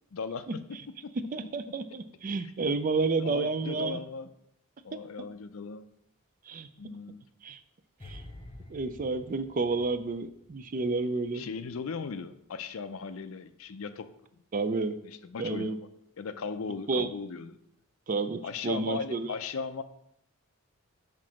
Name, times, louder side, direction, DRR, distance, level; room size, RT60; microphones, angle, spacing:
voice 1, 0.1-1.1 1.4-1.5 3.2-4.3 4.8-5.9 6.8-7.2 11.3-14.1 15.0-15.8 16.2-17.6 18.4-19.8, left 5 dB, 70° left, 11 dB, 0.4 m, -37 dB
voice 2, 1.3-4.0 6.5-6.7 7.4-7.6 8.0-8.2 8.7-11.5 14.5-15.0 15.4-15.8 16.9-17.1 18.1-19.3, right 3 dB, 35° right, 11 dB, 0.4 m, -30 dB
sound 1, 8.0-11.2 11.4-11.7, left 1 dB, 25° left, 0.6 m, -49 dB
5.9 x 3.8 x 6.1 m, 0.77 s
head